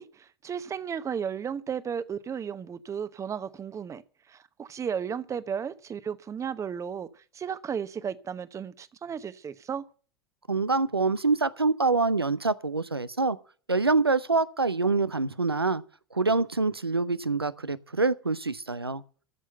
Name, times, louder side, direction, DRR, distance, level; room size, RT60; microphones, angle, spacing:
voice 1, 0.0-4.0 4.3-9.8, right 7 dB, 25° right, 1.0 m, -34 dB
voice 2, 10.5-13.4 13.7-15.8 16.1-19.0, right 3 dB, 85° right, 0.7 m, -25 dB
14.0 x 6.3 x 7.8 m
figure-of-eight pair, 75°, 13 cm